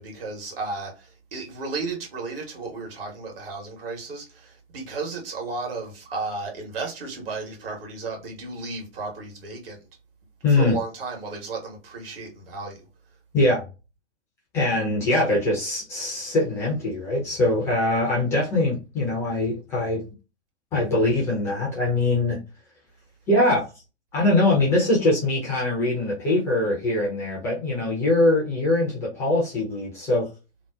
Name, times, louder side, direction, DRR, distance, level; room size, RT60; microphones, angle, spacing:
voice 1, 0.0-9.8 10.5-12.8, right 3 dB, 55° right, 1.2 m, -34 dB
voice 2, 10.4-10.8 13.3-13.6 14.5-20.0 20.7-22.4 23.3-23.7 24.1-30.3, left 2 dB, 10° left, 0.4 m, -22 dB
2.8 x 2.0 x 2.2 m
figure-of-eight pair, 120°, 35 cm